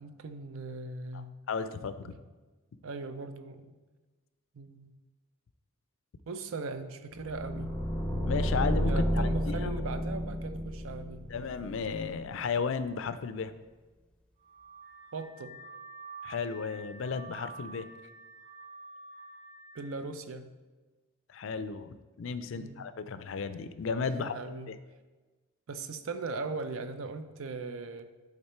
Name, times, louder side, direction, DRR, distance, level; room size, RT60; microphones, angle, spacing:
voice 1, 0.0-1.3 2.0-2.2 2.8-3.8 4.5-4.9 6.3-7.8 8.8-11.3 15.1-15.6 19.7-20.5 22.5-22.8 24.2-24.8 25.7-28.1, right 3 dB, 70° right, 10 dB, 0.5 m, -39 dB
voice 2, 1.5-2.1 8.2-9.9 11.3-13.5 16.2-17.9 21.3-24.3 24.7-24.8, left 5 dB, 60° left, 12 dB, 0.4 m, -34 dB
sound 1, 7.2-12.1, equal, 5° left, 0.6 m, -31 dB
Car / Alarm, 14.4-19.9, right 3 dB, 30° right, 1.1 m, -48 dB
8.7 x 3.9 x 4.3 m, 1.3 s
head